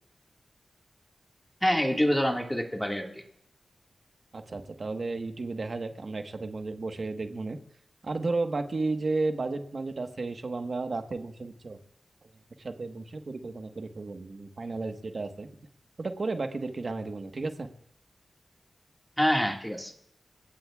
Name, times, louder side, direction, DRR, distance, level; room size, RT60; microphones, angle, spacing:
voice 1, 1.6-3.2 19.2-19.9, equal, 5° left, 2 dB, 1.9 m, -26 dB
voice 2, 4.3-7.6 8.0-11.8 12.2-12.3 12.6-15.5 16.0-17.7, right 3 dB, 55° right, 6 dB, 1.3 m, -33 dB
29.0 x 17.5 x 2.4 m, 0.71 s
wide cardioid pair, 90°, 0 cm